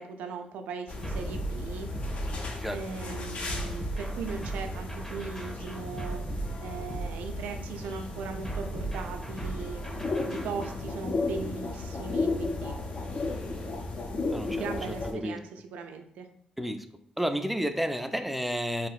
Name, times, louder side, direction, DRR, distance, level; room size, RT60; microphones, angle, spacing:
voice 1, 0.0-1.9 2.7-6.2 6.6-9.8 10.3-12.8 14.5-16.3, right 5 dB, 85° right, 6 dB, 0.3 m, -39 dB
sound 1, 0.9-15.1, left 2 dB, 55° left, 0.5 m, -35 dB
sound 2, 1.0-2.8 3.5-7.7 8.4-10.9, right 2 dB, 25° left, 1.1 m, -38 dB
voice 2, 14.3-14.7 15.0-15.4 16.6-16.8 17.2-18.9, equal, 5° right, 8 dB, 0.3 m, -31 dB
3.4 x 2.7 x 2.3 m, 0.69 s
cardioid pair, 70°, 3 cm